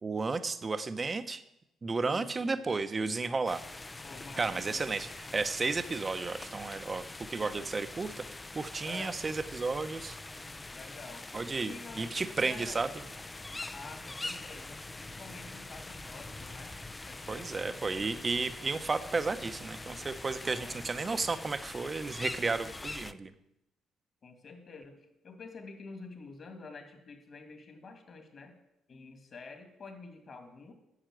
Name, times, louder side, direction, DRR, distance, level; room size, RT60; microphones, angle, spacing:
voice 1, 0.0-1.4 1.8-3.6 4.4-7.0 7.3-8.2 8.5-10.2 11.3-12.9 17.3-23.3, right 4 dB, 25° right, 10 dB, 0.8 m, -33 dB
voice 2, 2.0-2.6 4.0-4.9 8.8-9.2 10.7-11.2 11.6-12.2 12.4-12.8 13.7-16.8 17.0-18.2 20.4-20.8 24.2-28.5 28.9-30.7, left 4 dB, 45° left, 6 dB, 2.4 m, -48 dB
sound 1, 3.5-23.1, left 2 dB, 15° left, 0.5 m, -44 dB
10.0 x 7.2 x 9.2 m, 0.87 s
cardioid pair, 110°, 0 cm